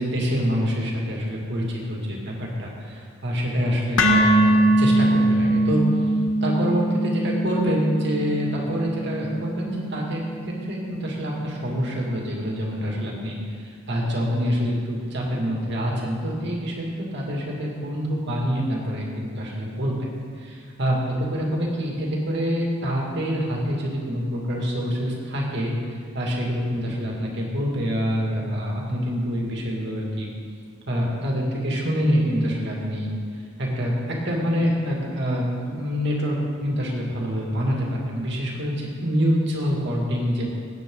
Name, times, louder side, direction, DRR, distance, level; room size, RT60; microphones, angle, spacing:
voice 1, 0.0-5.8 6.4-20.1 20.4-30.3 30.9-33.1 33.6-40.5, equal, 55° right, -2 dB, 2.5 m, -26 dB
sound 1, 4.0-12.1, right 1 dB, 65° left, 1.0 m, -23 dB
18.5 x 9.3 x 4.0 m, 2.2 s
head